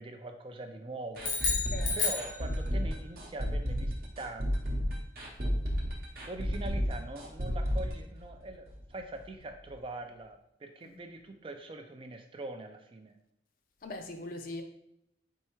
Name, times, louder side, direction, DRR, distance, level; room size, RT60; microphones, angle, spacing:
voice 1, 0.0-1.4 2.0-4.9 6.2-13.2, right 2 dB, 30° right, 0.3 m, -43 dB
sound 1, 1.2-3.0, left 4 dB, 90° left, 1.0 m, -32 dB
sound 2, 1.2-8.9 9.2-9.3 9.7-9.8, equal, 55° right, 0.8 m, -32 dB
voice 2, 1.6-2.0 10.8-11.0 13.8-14.6, left 2 dB, 50° left, 0.5 m, -41 dB
4.5 x 3.2 x 3.0 m
head